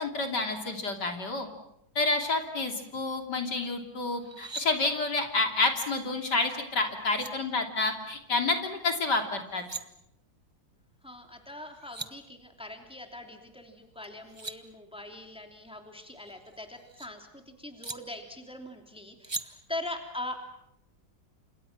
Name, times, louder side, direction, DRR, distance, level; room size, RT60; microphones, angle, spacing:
voice 1, 0.0-1.5 1.9-9.6, left 3 dB, 60° left, 4 dB, 3.5 m, -29 dB
sound 1, 4.2-4.7 6.7-6.8 7.1-7.3 9.4-9.8 11.5-11.6 11.8-12.1 14.0-14.6 16.1-17.1 17.8-18.0 19.2-19.4, right 3 dB, 20° right, 0.9 m, -39 dB
voice 2, 11.0-20.4, left 1 dB, 5° right, 4 dB, 2.9 m, -41 dB
30.0 x 27.5 x 6.0 m, 0.79 s
omnidirectional pair, 2.0 m